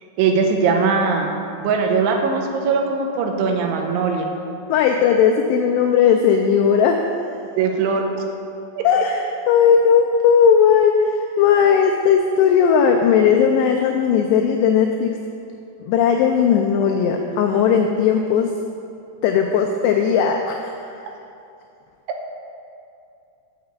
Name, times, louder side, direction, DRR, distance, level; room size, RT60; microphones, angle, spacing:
voice 1, 0.2-1.3 1.6-4.3 7.6-8.0 8.8-8.9, right 5 dB, 90° right, 3 dB, 3.2 m, -20 dB
voice 2, 4.7-7.0 8.8-15.2 15.9-18.5 19.2-20.7, left 7 dB, 90° left, 3 dB, 2.4 m, -17 dB
6.9 x 6.6 x 7.8 m, 2.6 s
omnidirectional pair, 5.4 m